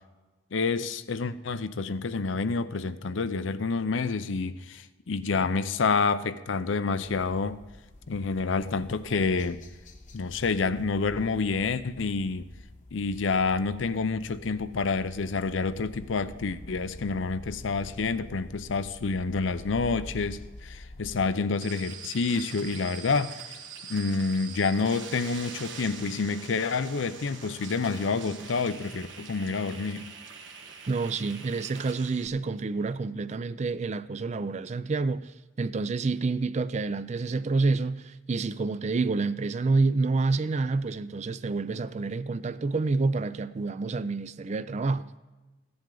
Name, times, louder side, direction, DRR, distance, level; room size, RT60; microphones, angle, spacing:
voice 1, 0.5-7.6 8.1-9.6 10.1-12.5 12.9-23.6 23.9-30.1, left 4 dB, 75° left, 0.6 m, -28 dB
sound 1, 6.9-21.3, left 1 dB, 40° left, 1.0 m, -47 dB
sound 2, 21.6-32.3, right 6 dB, 70° right, 1.2 m, -44 dB
voice 2, 30.9-35.3 35.6-45.2, right 3 dB, 35° right, 0.4 m, -28 dB
15.5 x 10.5 x 3.8 m
head